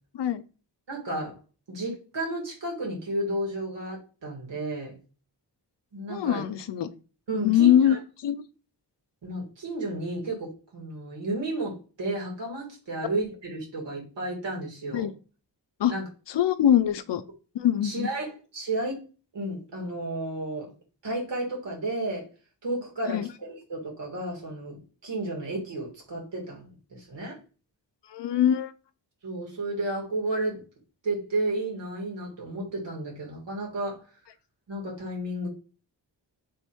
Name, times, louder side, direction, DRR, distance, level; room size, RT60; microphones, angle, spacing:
voice 1, 0.9-1.4 1.7-4.9 5.9-6.4 7.3-8.0 9.2-15.1 15.9-16.0 17.8-19.0 19.3-20.7 21.0-22.3 22.6-24.8 25.0-27.4 29.2-30.6 31.0-34.0 34.7-35.5, right 2 dB, 80° right, -2 dB, 2.1 m, -32 dB
voice 2, 6.1-6.9 7.4-8.4 14.9-15.1 15.8-15.9 16.3-17.2 17.5-18.1 23.1-23.3 28.1-28.7, left 10 dB, 75° left, 13 dB, 0.6 m, -23 dB
3.5 x 3.3 x 4.4 m, 0.35 s
wide cardioid pair, 170°, 43 cm